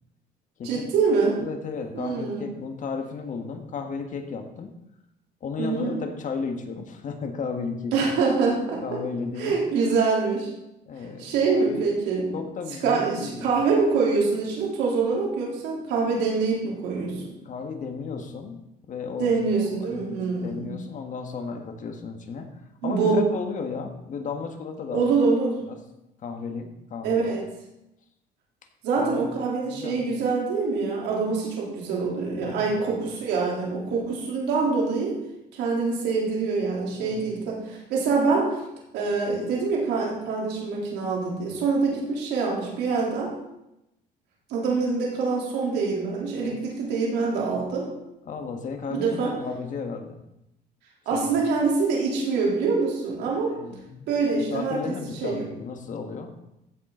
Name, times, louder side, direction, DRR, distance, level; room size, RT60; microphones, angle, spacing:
voice 1, 0.6-1.4 1.9-2.5 5.6-5.9 7.9-9.0 9.4-10.5 11.2-12.3 12.8-17.4 19.2-20.7 22.8-23.2 24.9-25.6 27.0-27.4 28.8-35.2 35.5-38.6 38.9-43.3 44.5-47.9 48.9-49.3 51.1-53.6 54.1-54.8 55.2-55.5, right 4 dB, 85° right, -3 dB, 3.6 m, -25 dB
voice 2, 1.3-4.7 5.4-8.1 8.8-9.6 10.9-11.8 12.3-13.5 17.4-18.6 18.9-19.3 19.8-25.1 25.7-25.8 26.2-27.2 29.0-29.3 29.7-30.0 32.4-33.0 37.0-37.2 48.2-50.2 51.1-51.4 53.5-54.1 54.4-56.3, left 5 dB, 50° left, 5 dB, 1.6 m, -34 dB
15.0 x 7.5 x 3.9 m, 0.87 s
cardioid pair, 110°, 17 cm